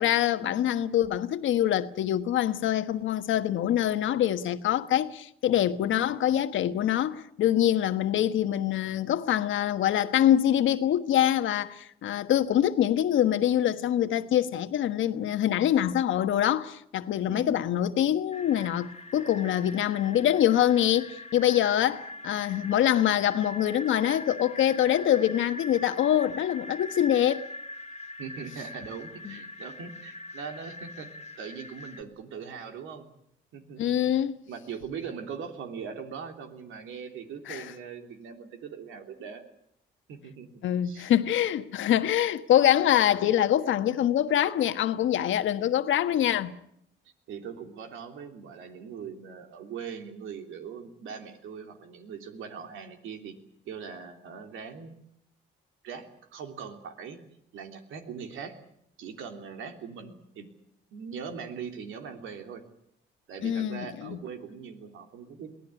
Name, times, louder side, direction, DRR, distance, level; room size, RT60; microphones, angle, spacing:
voice 1, 0.0-27.4 29.2-29.4 33.8-34.4 37.5-37.7 40.6-46.5 63.4-64.2, left 11 dB, 75° left, 1.4 m, -25 dB
voice 2, 17.3-17.6 28.2-31.1 31.4-33.1 33.5-34.0 34.5-39.4 40.1-41.1 47.3-53.3 53.6-54.9 55.8-57.2 57.5-58.6 59.0-60.5 60.9-62.6 63.3-65.5, right 6 dB, 85° right, 3.3 m, -41 dB
sound 1, 18.3-32.0, left 1 dB, 35° left, 1.9 m, -42 dB
22.5 x 17.0 x 9.9 m
cardioid pair, 90°, 20 cm